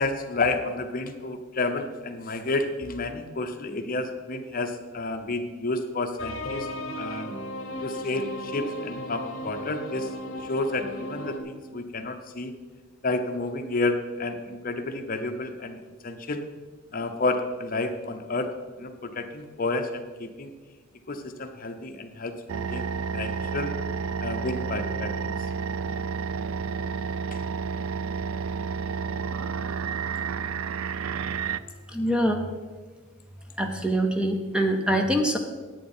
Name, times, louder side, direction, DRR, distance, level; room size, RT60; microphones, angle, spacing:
voice 1, 0.0-6.7 7.0-7.3 7.8-10.1 10.4-12.5 13.0-16.4 16.9-18.5 18.8-20.5 21.1-23.7 24.2-25.5 27.3-27.4, left 2 dB, 40° left, 7 dB, 0.8 m, -30 dB
sound 1, 6.2-11.4, left 1 dB, 65° left, 1.0 m, -35 dB
sound 2, 22.5-31.6, right 6 dB, 75° right, 0.4 m, -30 dB
voice 2, 31.9-32.4 33.6-35.4, right 1 dB, 5° right, 4 dB, 0.7 m, -24 dB
10.5 x 8.7 x 4.4 m, 1.3 s
head